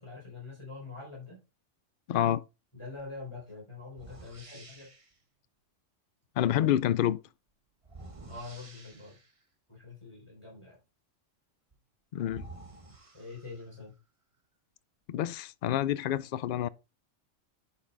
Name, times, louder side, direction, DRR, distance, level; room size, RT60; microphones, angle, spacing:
voice 1, 0.0-1.4 2.7-4.9 8.3-9.2 9.7-10.8 13.1-13.9, left 3 dB, 20° left, 4.0 m, -44 dB
voice 2, 2.1-2.4 6.4-7.2 12.1-12.4 15.1-16.7, left 11 dB, 60° left, 0.6 m, -28 dB
sound 1, 3.0-3.2 3.9-5.2 7.8-9.4 11.7-11.8 12.2-13.9, right 2 dB, 25° right, 1.2 m, -50 dB
10.5 x 5.7 x 3.4 m
omnidirectional pair, 1.3 m